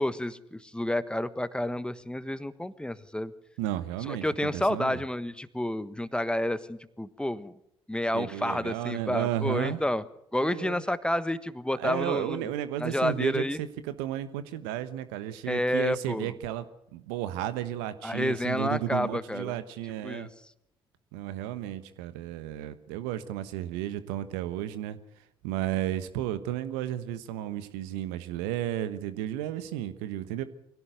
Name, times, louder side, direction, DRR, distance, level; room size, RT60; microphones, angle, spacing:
voice 1, 0.0-3.3 4.1-7.6 7.9-10.0 10.3-12.4 12.8-13.6 15.5-16.3 18.0-19.6 20.0-20.3, left 1 dB, 5° left, 14 dB, 1.3 m, -30 dB
voice 2, 3.6-5.0 8.1-9.8 10.4-10.8 11.8-16.6 16.9-20.3 21.1-25.0 25.4-30.4, right 12 dB, 75° right, 13 dB, 1.2 m, -33 dB
23.5 x 17.0 x 8.0 m, 0.79 s
hypercardioid pair, 45°, 12 cm